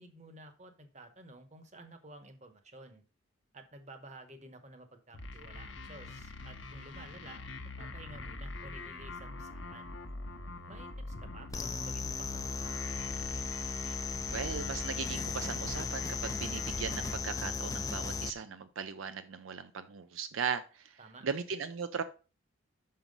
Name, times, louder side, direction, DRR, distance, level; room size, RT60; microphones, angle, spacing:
voice 1, 0.0-3.0 3.5-7.4 7.8-9.9 10.7-13.0 21.0-21.3, right 2 dB, 35° right, 1.1 m, -52 dB
sound 1, 5.1-17.1, left 2 dB, 65° left, 0.9 m, -44 dB
sound 2, 11.5-18.3, left 5 dB, 15° left, 0.4 m, -36 dB
voice 2, 14.3-21.0 21.2-22.0, right 6 dB, 75° right, 0.5 m, -38 dB
6.0 x 5.6 x 5.2 m
head